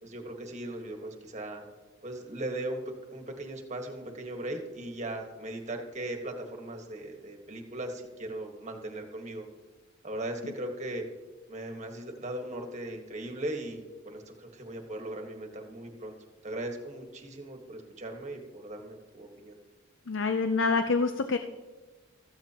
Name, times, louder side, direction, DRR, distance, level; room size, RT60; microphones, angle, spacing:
voice 1, 0.0-1.6 2.0-2.8 3.1-9.4 10.0-11.1 11.5-16.1 16.4-19.5, right 1 dB, 35° right, 4 dB, 1.5 m, -38 dB
voice 2, 20.1-21.4, left 4 dB, 70° left, 8 dB, 0.6 m, -26 dB
15.0 x 14.0 x 2.9 m, 1.3 s
head